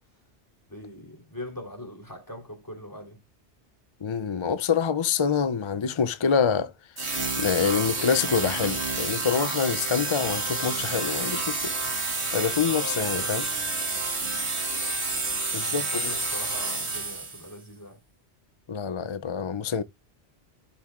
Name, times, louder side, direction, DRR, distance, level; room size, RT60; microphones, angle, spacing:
voice 1, 0.7-3.2 12.6-13.7 15.6-18.0, left 1 dB, 15° left, 3.4 m, -41 dB
voice 2, 4.0-6.7 7.4-11.7 12.3-13.4 15.5-16.0 18.7-19.8, left 6 dB, 40° left, 0.5 m, -26 dB
sound 1, 7.0-17.5, right 3 dB, 70° right, 2.6 m, -29 dB
12.5 x 6.9 x 2.4 m
omnidirectional pair, 1.1 m